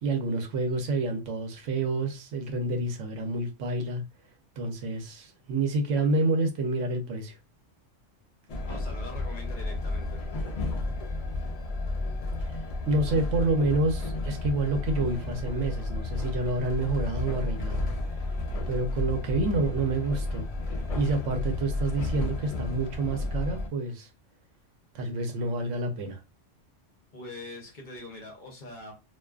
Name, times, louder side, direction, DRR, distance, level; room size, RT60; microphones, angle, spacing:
voice 1, 0.0-4.0 4.6-7.4 12.4-18.3 18.7-20.5 20.9-24.1 24.9-26.2, right 2 dB, 85° right, 1.0 m, -28 dB
Train, 8.5-23.7, left 2 dB, 75° left, 0.3 m, -32 dB
voice 2, 8.6-10.2 27.1-28.9, left 2 dB, 50° left, 0.8 m, -43 dB
2.4 x 2.2 x 2.3 m
omnidirectional pair, 1.2 m